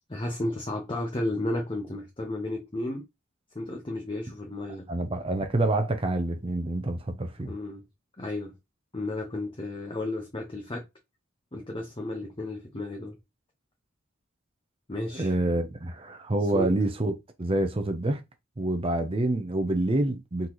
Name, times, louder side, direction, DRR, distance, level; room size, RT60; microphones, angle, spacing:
voice 1, 0.1-3.0 3.5-4.9 7.4-7.8 8.2-8.5 8.9-10.8 11.5-13.2 14.9-15.3 16.5-16.7, left 1 dB, 25° left, 1.0 m, -33 dB
voice 2, 4.9-7.5 15.1-17.1 17.4-18.2 18.6-20.5, right 1 dB, 30° right, 0.7 m, -27 dB
4.3 x 3.9 x 3.1 m
head